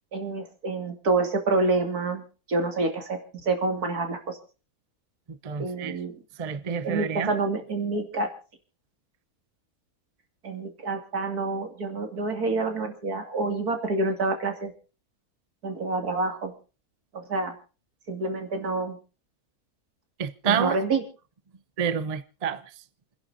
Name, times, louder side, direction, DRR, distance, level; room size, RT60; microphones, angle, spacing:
voice 1, 0.1-4.4 5.6-6.1 6.8-8.3 10.4-14.7 15.6-16.5 17.1-17.5 18.1-19.0 20.5-21.0, right 3 dB, 85° right, 3.0 m, -27 dB
voice 2, 5.3-6.0 6.4-7.3 20.2-20.8 21.8-22.7, right 7 dB, 35° right, 0.8 m, -28 dB
28.5 x 11.0 x 2.7 m
omnidirectional pair, 1.6 m